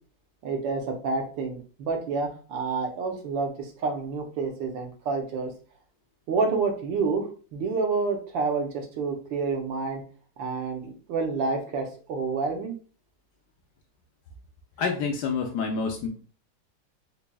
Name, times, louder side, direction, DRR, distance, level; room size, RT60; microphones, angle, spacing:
voice 1, 0.4-5.5 6.3-10.0 10.4-12.7, right 4 dB, 70° right, 3 dB, 1.3 m, -29 dB
voice 2, 14.8-16.1, left 5 dB, 80° left, 3 dB, 0.9 m, -27 dB
4.0 x 3.4 x 2.2 m, 0.39 s
omnidirectional pair, 2.3 m